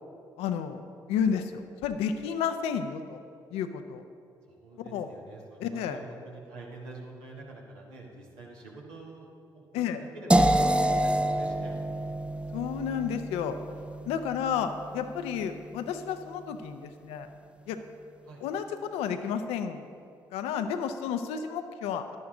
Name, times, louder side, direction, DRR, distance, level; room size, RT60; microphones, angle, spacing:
voice 1, 0.4-3.2 3.5-4.0 4.8-5.1 5.6-6.0 9.7-10.0 12.5-13.6 14.1-17.3 17.7-17.8 18.4-19.9 20.3-22.2, left 7 dB, 75° left, 8 dB, 0.6 m, -31 dB
voice 2, 4.5-12.1 18.2-18.4, right 2 dB, 85° right, -2 dB, 1.5 m, -47 dB
sound 1, 10.3-16.2, right 1 dB, 10° right, 0.6 m, -28 dB
11.0 x 10.5 x 3.8 m, 2.4 s
hypercardioid pair, 45°, 10 cm